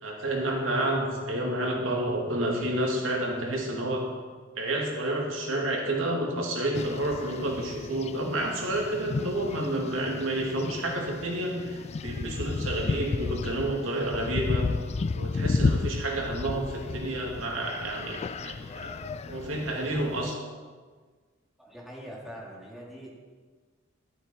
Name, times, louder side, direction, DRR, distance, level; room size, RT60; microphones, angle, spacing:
voice 1, 0.0-4.2 4.6-14.8 15.1-18.9 19.3-20.4, right 1 dB, 90° right, 0 dB, 2.6 m, -30 dB
sound 1, 6.7-20.3, left 4 dB, 35° left, 0.3 m, -33 dB
voice 2, 13.1-13.5 16.8-16.9 17.9-19.8 20.1-20.6 21.6-23.1, equal, ahead, -4 dB, 2.9 m, -47 dB
12.5 x 12.5 x 4.6 m, 1.5 s
head